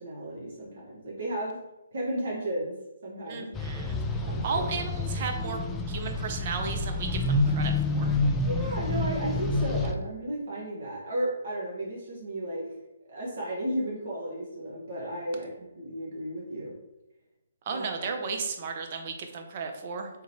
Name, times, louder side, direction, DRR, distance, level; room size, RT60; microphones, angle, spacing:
voice 1, 0.0-1.6 1.9-2.7 3.0-3.5 4.2-4.7 8.4-12.7 13.1-16.7 17.7-17.9, right 1 dB, 65° right, -5 dB, 1.4 m, -34 dB
voice 2, 3.3-4.0 4.4-5.6 5.9-8.1 17.7-20.2, right 5 dB, 40° right, 4 dB, 0.7 m, -34 dB
sound 1, 3.5-9.9, left 2 dB, 10° left, 0.3 m, -28 dB
3.6 x 3.0 x 4.2 m, 0.95 s
figure-of-eight pair, 145°, 0 cm